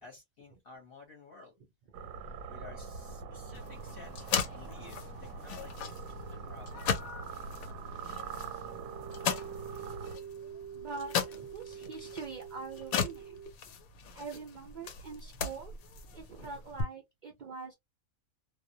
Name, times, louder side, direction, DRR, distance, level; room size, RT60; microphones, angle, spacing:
voice 1, 0.0-1.5 2.5-6.9, left 3 dB, 50° left, 0.9 m, -53 dB
sound 1, 1.9-10.2, right 5 dB, 85° right, 1.0 m, -44 dB
sound 2, 3.5-16.8, left 7 dB, 90° left, 1.0 m, -38 dB
voice 2, 8.4-8.9 10.7-13.4 14.1-15.7 16.1-17.7, right 4 dB, 70° right, 0.4 m, -44 dB
sound 3, 8.5-13.5, right 8 dB, 25° left, 0.3 m, -46 dB
2.3 x 2.0 x 2.6 m
omnidirectional pair, 1.4 m